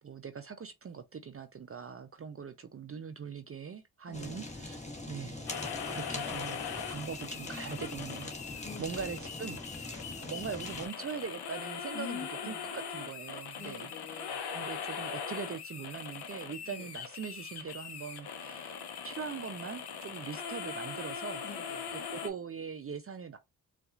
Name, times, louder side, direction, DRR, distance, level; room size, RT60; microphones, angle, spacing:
voice 1, 0.0-4.8 5.1-5.5 5.9-6.6 6.9-13.9 14.5-21.4 22.1-23.4, right 6 dB, 35° right, 0.5 m, -42 dB
voice 2, 4.1-4.4 8.6-9.3 11.9-12.7 13.6-14.4 16.6-16.9 21.4-21.9, left 6 dB, 45° left, 2.2 m, -46 dB
Fire, 4.1-10.9, left 2 dB, 15° left, 1.3 m, -43 dB
sound 1, 5.5-22.3, left 7 dB, 70° left, 0.8 m, -41 dB
4.1 x 2.5 x 2.4 m
cardioid pair, 60°, 41 cm